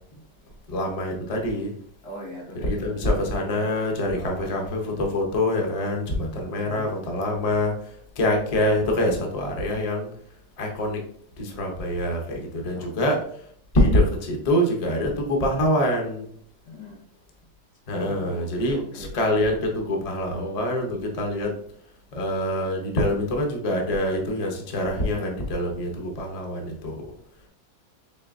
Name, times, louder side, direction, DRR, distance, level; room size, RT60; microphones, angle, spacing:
voice 1, 0.7-1.7 2.6-7.7 8.2-10.1 10.6-11.0 11.4-13.2 13.7-16.3 17.9-21.5 22.1-27.1, left 1 dB, 50° left, 1 dB, 0.4 m, -25 dB
voice 2, 2.0-3.1 4.1-4.5 6.5-6.9 12.7-13.2 16.7-17.1 17.9-19.2, left 1 dB, 75° left, -3 dB, 2.2 m, -41 dB
4.4 x 3.1 x 2.5 m, 0.62 s
omnidirectional pair, 1.7 m